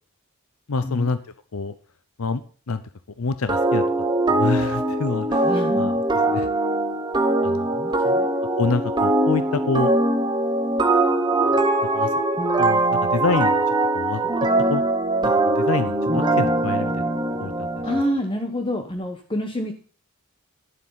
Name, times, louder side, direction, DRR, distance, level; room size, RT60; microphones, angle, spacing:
voice 1, 0.7-1.2 1.5-1.7 2.2-2.4 2.7-2.8 3.2-3.8 4.3-5.5 5.8-6.5 7.4-7.7 8.6-9.9 11.8-12.1 12.6-13.6 13.9-14.2 14.7-14.8 15.2-17.0 17.4-17.7, left 4 dB, 80° left, 12 dB, 0.7 m, -26 dB
sound 1, 3.5-18.1, right 2 dB, 20° right, 1.0 m, -21 dB
voice 2, 5.4-5.9 7.7-8.3 17.8-19.7, equal, 25° left, 5 dB, 1.0 m, -27 dB
11.0 x 7.6 x 5.6 m, 0.42 s
head